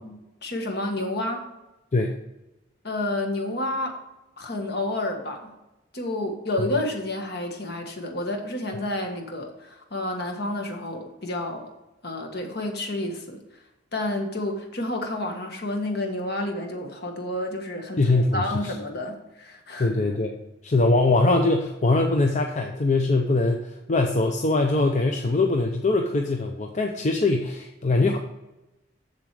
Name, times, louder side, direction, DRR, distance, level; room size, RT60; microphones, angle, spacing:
voice 1, 0.4-1.4 2.8-4.0 4.4-5.5 5.9-11.7 12.0-13.6 13.9-19.9, left 1 dB, 55° left, 4 dB, 1.5 m, -30 dB
voice 2, 18.0-18.7 19.8-20.3 20.6-28.2, left 2 dB, 40° left, 3 dB, 0.6 m, -22 dB
7.4 x 7.2 x 4.8 m, 0.98 s
head